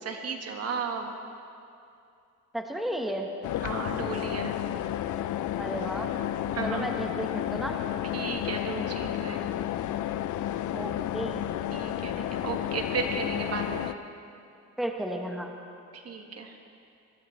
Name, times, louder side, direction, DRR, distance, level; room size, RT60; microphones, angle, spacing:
voice 1, 0.0-1.1 3.6-4.5 6.5-6.8 8.1-9.5 11.7-13.9 15.9-16.5, right 5 dB, 55° right, 4 dB, 1.5 m, -34 dB
voice 2, 2.5-3.3 5.6-6.2 6.6-7.8 10.7-11.5 14.8-15.5, right 1 dB, ahead, 2 dB, 1.2 m, -33 dB
sound 1, 3.4-13.9, left 12 dB, 75° left, 0.5 m, -31 dB
20.0 x 15.5 x 3.2 m, 2.5 s
cardioid pair, 90°, 30 cm